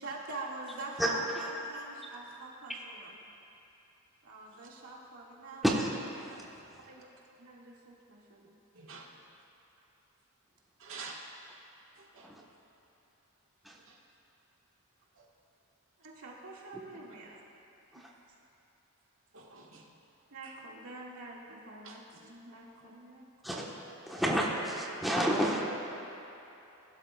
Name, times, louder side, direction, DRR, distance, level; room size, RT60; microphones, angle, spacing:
voice 1, 0.0-3.2 4.2-5.7 6.6-7.0 7.4-8.5 16.0-17.4 17.9-18.1 20.3-23.7, right 2 dB, 80° right, -4 dB, 2.1 m, -45 dB
voice 2, 8.7-9.1 10.8-11.2 12.1-12.3 13.9-14.0 15.2-15.3 19.3-19.9 21.8-22.0 23.5-23.6, right 4 dB, 65° right, -2 dB, 1.6 m, -47 dB
voice 3, 24.1-26.0, equal, ahead, -4 dB, 1.2 m, -29 dB
21.0 x 12.0 x 2.4 m, 3.0 s
head